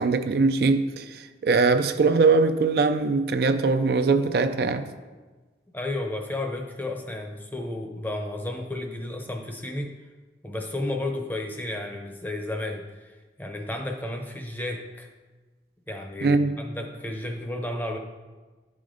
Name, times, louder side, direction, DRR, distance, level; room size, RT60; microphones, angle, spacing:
voice 1, 0.0-4.9 16.2-16.6, right 4 dB, 60° right, 0.4 m, -22 dB
voice 2, 5.7-9.9 10.4-15.1 15.9-18.0, left 1 dB, 10° left, 0.6 m, -32 dB
11.0 x 5.0 x 3.8 m
head